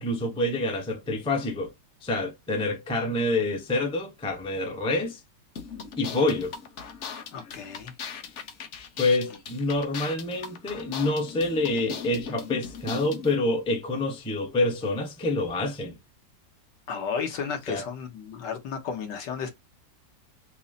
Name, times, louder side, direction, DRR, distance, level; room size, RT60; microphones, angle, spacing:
voice 1, 0.0-1.7 2.0-5.2 6.0-6.5 9.0-16.0 17.7-17.8, left 2 dB, 5° left, 0.4 m, -27 dB
sound 1, 5.5-13.3, left 6 dB, 55° left, 0.8 m, -39 dB
voice 2, 7.3-7.9 16.9-19.5, left 6 dB, 75° left, 1.7 m, -33 dB
5.4 x 2.1 x 2.7 m
omnidirectional pair, 1.9 m